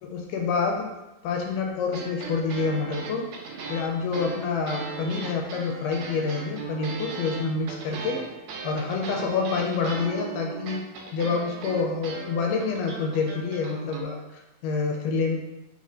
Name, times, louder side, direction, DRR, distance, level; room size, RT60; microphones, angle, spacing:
voice 1, 0.0-0.9 1.2-3.3 3.7-8.2 8.6-10.8 11.1-15.4, left 4 dB, 85° left, 1 dB, 2.1 m, -27 dB
sound 1, 1.9-14.0, right 4 dB, 80° right, 1.5 m, -37 dB
4.2 x 3.9 x 2.5 m, 0.98 s
omnidirectional pair, 3.8 m